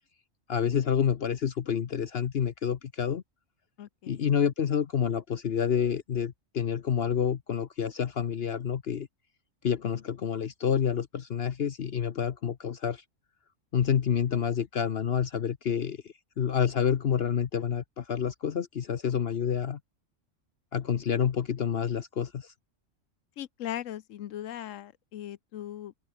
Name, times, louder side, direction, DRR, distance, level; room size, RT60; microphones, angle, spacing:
voice 1, 0.5-3.2 4.1-9.1 9.6-13.0 13.7-19.8 20.7-22.5, left 8 dB, 55° left, 1.0 m, -28 dB
voice 2, 3.8-4.2 23.4-25.9, left 11 dB, 80° left, 1.1 m, -39 dB
open air
omnidirectional pair, 1.3 m